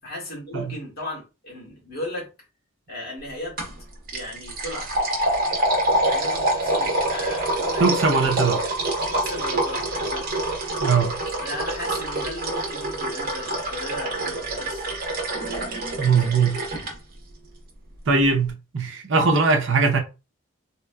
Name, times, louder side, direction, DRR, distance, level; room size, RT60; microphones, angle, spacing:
voice 1, 0.0-2.3 2.9-3.6 4.1-4.9 6.1-7.8 8.1-8.8 9.1-10.3 11.4-14.9, left 1 dB, 50° left, 1.8 m, -36 dB
sound 1, 3.6-3.8 4.1-16.9, right 1 dB, 45° right, 1.0 m, -26 dB
voice 2, 7.8-8.6 10.8-11.2 16.0-16.6 18.1-20.0, right 4 dB, 60° right, 0.6 m, -20 dB
3.4 x 2.8 x 2.3 m
head